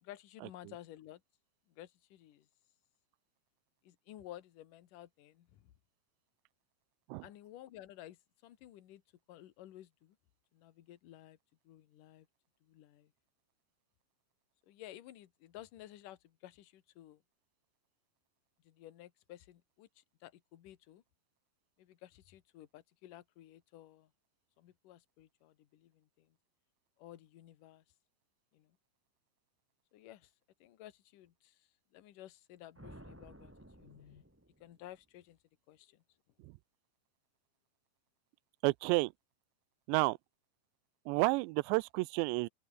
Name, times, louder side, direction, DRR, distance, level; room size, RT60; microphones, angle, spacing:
voice 1, 0.0-1.2 1.7-2.5 3.8-5.7 7.2-9.0 9.3-10.2 10.5-11.4 11.6-12.3 12.6-13.1 14.7-17.2 18.6-21.0 21.8-24.1 24.6-26.3 27.0-27.8 28.5-28.7 29.9-30.3 30.6-31.6 31.9-33.5 33.8-34.2 34.6-35.4 35.7-36.0, left 13 dB, 60° left, 2.7 m, -54 dB
sound 1, 32.8-35.0, right 1 dB, 5° right, 1.3 m, -55 dB
voice 2, 38.6-39.1 39.9-40.2 41.1-42.5, right 24 dB, 85° right, 2.8 m, -30 dB
open air
omnidirectional pair, 5.0 m